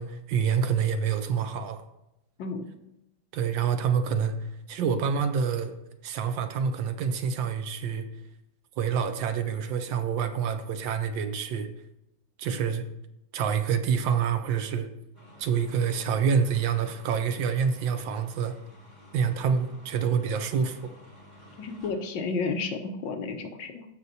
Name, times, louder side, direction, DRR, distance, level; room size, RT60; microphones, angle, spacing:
voice 1, 0.0-1.8 3.3-4.3 4.7-5.7 6.0-8.1 8.8-11.7 12.4-12.8 13.3-14.9 15.4-18.5 19.1-20.9, right 7 dB, 75° right, 9 dB, 1.4 m, -27 dB
sound 1, 15.1-22.1, equal, 20° right, 3.8 m, -52 dB
voice 2, 21.6-23.8, left 4 dB, 70° left, 5 dB, 1.5 m, -32 dB
14.5 x 6.1 x 2.7 m, 0.88 s
omnidirectional pair, 2.2 m